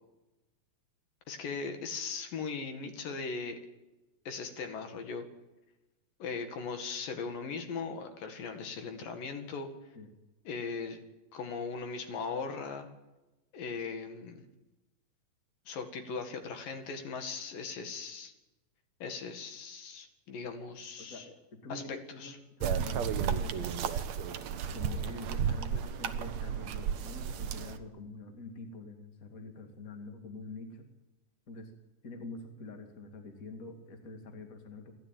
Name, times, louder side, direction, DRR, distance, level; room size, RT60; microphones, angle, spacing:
voice 1, 1.3-3.6 4.3-5.3 6.2-9.7 10.5-11.0 11.3-12.9 13.5-14.5 15.7-18.3 19.0-21.3 21.7-22.4, left 5 dB, 70° left, 6 dB, 3.7 m, -39 dB
voice 2, 21.0-23.8 24.7-30.9 31.5-31.7 32.0-34.9, left 3 dB, 25° left, 4 dB, 2.2 m, -46 dB
sound 1, 22.6-27.8, right 7 dB, 65° right, 1.9 m, -33 dB
28.0 x 12.5 x 9.1 m, 1.0 s
omnidirectional pair, 4.2 m